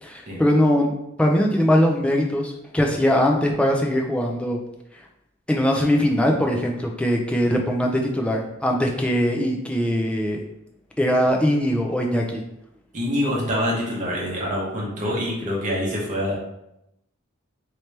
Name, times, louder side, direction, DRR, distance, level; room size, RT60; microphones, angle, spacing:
voice 1, 0.0-4.6 5.5-10.4 11.0-12.4, equal, 5° left, 1 dB, 0.3 m, -21 dB
voice 2, 12.9-16.3, equal, 35° right, -4 dB, 0.9 m, -25 dB
3.0 x 2.9 x 3.2 m, 0.83 s
head